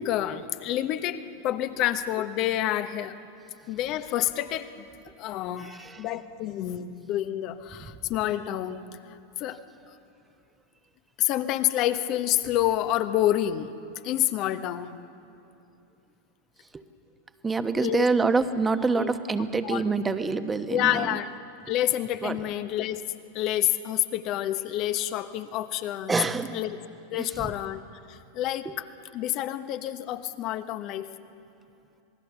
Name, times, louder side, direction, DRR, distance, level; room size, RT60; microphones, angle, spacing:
voice 1, 0.0-3.2 3.7-4.9 5.2-8.8 9.4-9.6 9.9-10.0 11.2-13.7 14.0-15.0 17.8-18.1 18.9-19.1 19.6-19.8 20.7-21.3 21.7-23.0 23.3-26.2 26.5-26.8 27.1-28.9 29.1-31.1, left 13 dB, 45° left, 11 dB, 1.1 m, -28 dB
voice 2, 5.6-6.0 16.7-16.8 17.4-21.2 22.2-22.4 26.1-26.6 27.1-27.5 28.6-28.7, right 4 dB, 15° right, 9 dB, 1.2 m, -26 dB
26.5 x 19.5 x 7.0 m, 2.7 s
hypercardioid pair, 90°, 0 cm